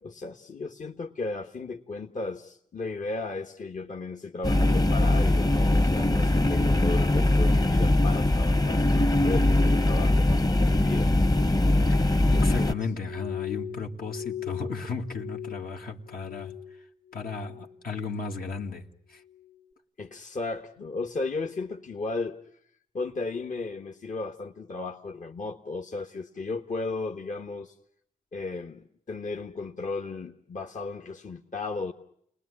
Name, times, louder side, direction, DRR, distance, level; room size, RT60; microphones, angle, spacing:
voice 1, 0.0-11.1 12.3-12.7 20.0-22.4 22.9-27.7 28.3-31.9, left 3 dB, 55° left, 1.4 m, -35 dB
sound 1, 4.4-12.7, left 1 dB, 25° left, 1.0 m, -22 dB
voice 2, 11.9-16.5 17.1-19.2, left 4 dB, 75° left, 2.2 m, -35 dB
Glass, 12.2-16.8 17.1-17.7 18.1-18.7 19.2-19.5, left 10 dB, 40° left, 2.0 m, -39 dB
30.0 x 20.0 x 9.8 m
supercardioid pair, 40°, 15 cm